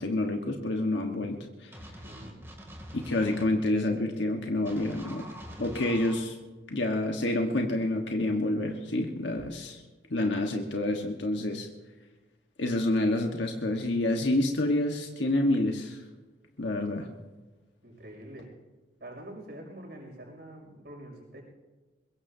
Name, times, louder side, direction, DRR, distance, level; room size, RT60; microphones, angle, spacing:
voice 1, 0.0-1.8 2.9-5.2 5.6-6.3 6.7-9.8 10.1-11.7 12.6-16.0 16.6-17.1, left 1 dB, 75° left, 2 dB, 1.4 m, -28 dB
sound 1, 1.7-3.5 4.7-6.2, equal, 15° right, 2.6 m, -44 dB
voice 2, 2.0-2.4 17.8-18.6 19.0-21.4, right 1 dB, 60° right, 0 dB, 6.1 m, -45 dB
22.5 x 22.0 x 2.8 m, 1.2 s
head